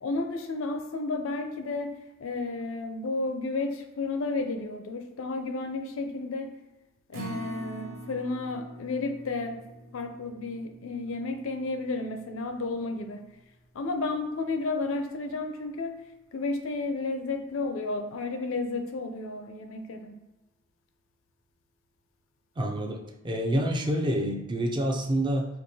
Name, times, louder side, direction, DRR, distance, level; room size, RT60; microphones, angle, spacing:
voice 1, 0.0-1.9 2.2-6.5 7.1-9.6 9.9-13.2 13.7-15.9 16.3-20.2, left 3 dB, 70° left, 6 dB, 0.4 m, -32 dB
Acoustic guitar, 7.1-13.4 13.8-13.9 14.3-14.4, right 2 dB, 90° right, 0.8 m, -45 dB
voice 2, 22.6-25.5, right 1 dB, 20° right, 2 dB, 0.4 m, -27 dB
4.5 x 2.5 x 2.7 m, 1.0 s
head